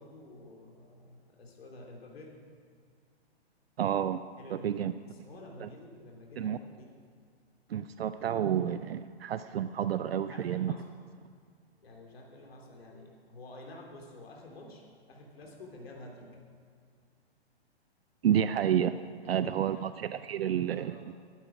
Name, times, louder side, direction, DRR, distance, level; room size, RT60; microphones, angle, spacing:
voice 1, 0.0-2.4 4.4-6.9 10.3-10.8 11.8-16.4 19.2-19.8 20.8-21.1, left 2 dB, 65° left, 0 dB, 3.0 m, -50 dB
voice 2, 3.8-4.2 4.5-4.9 5.6-5.7 6.4-6.6 7.7-10.7 18.2-19.0 19.3-21.1, right 9 dB, 65° right, 13 dB, 0.5 m, -30 dB
13.5 x 11.5 x 5.0 m, 2.1 s
hypercardioid pair, 125°, 32 cm